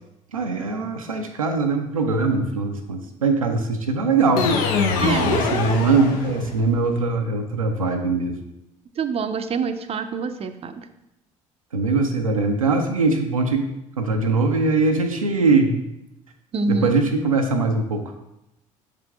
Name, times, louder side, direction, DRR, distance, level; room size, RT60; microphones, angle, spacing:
voice 1, 0.3-4.5 5.3-8.4 11.7-13.6 14.0-15.8 16.7-18.0, right 3 dB, 85° right, 3 dB, 0.5 m, -21 dB
sound 1, 4.4-6.7, left 4 dB, 60° left, 0.8 m, -23 dB
voice 2, 5.0-5.3 9.0-10.9 16.5-17.0, right 4 dB, 35° right, 9 dB, 0.6 m, -26 dB
6.6 x 4.9 x 3.5 m, 0.89 s
figure-of-eight pair, 55°, 17 cm